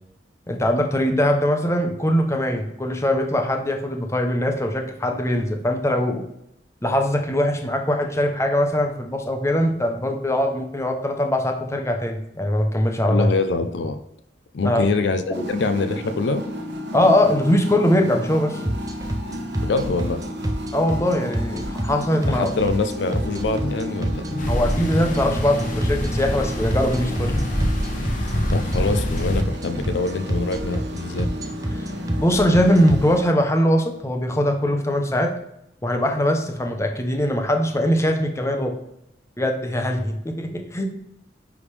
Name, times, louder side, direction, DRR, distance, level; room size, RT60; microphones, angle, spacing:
voice 1, 0.5-6.2 6.8-13.3 14.6-14.9 15.4-15.5 16.9-18.6 20.7-22.5 24.5-27.4 32.2-35.3 35.8-38.7 39.4-40.8, left 1 dB, 15° left, 4 dB, 0.8 m, -21 dB
voice 2, 13.1-14.0 14.5-16.4 19.6-20.2 22.3-24.5 28.5-31.3, left 3 dB, 70° left, 10 dB, 0.4 m, -24 dB
sound 1, 15.3-33.2, equal, 75° right, 1.2 m, -32 dB
sound 2, 18.6-33.0, right 1 dB, 20° right, 0.6 m, -26 dB
sound 3, 24.4-29.4, equal, 45° left, 1.0 m, -26 dB
9.6 x 3.5 x 3.3 m, 0.79 s
head